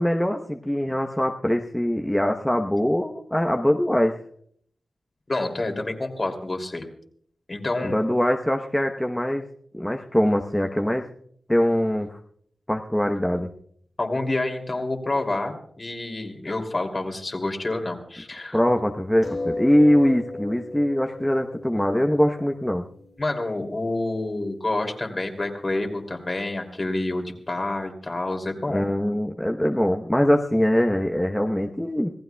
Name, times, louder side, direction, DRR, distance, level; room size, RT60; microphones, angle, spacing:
voice 1, 0.0-4.1 7.8-9.5 9.7-11.1 11.5-12.2 12.7-13.5 18.5-22.8 28.7-32.1, equal, 10° left, 3 dB, 1.0 m, -22 dB
voice 2, 5.3-6.9 7.5-8.0 14.0-18.6 23.2-28.9, left 2 dB, 40° left, 3 dB, 2.9 m, -28 dB
sound 1, 19.2-24.2 25.0-25.1 25.4-25.5, left 2 dB, 65° left, 4.5 m, -36 dB
26.5 x 16.0 x 2.3 m, 0.63 s
cardioid pair, 50°, 0 cm